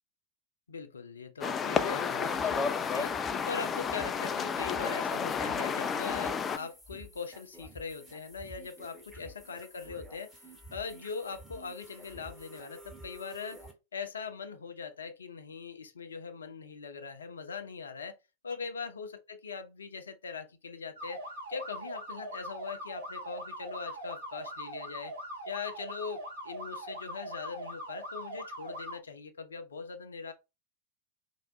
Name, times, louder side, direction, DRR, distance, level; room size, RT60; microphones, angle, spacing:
voice 1, 0.7-13.6 13.9-18.2 18.4-21.2 21.5-25.1 25.5-30.3, left 5 dB, 70° left, 0.6 m, -41 dB
sound 1, 1.4-6.6, left 6 dB, 20° left, 0.4 m, -31 dB
sound 2, 1.7-13.7, right 1 dB, 10° right, 1.6 m, -51 dB
sound 3, 21.0-29.0, equal, 65° right, 1.3 m, -41 dB
4.5 x 2.4 x 2.9 m
figure-of-eight pair, 90°, 0 cm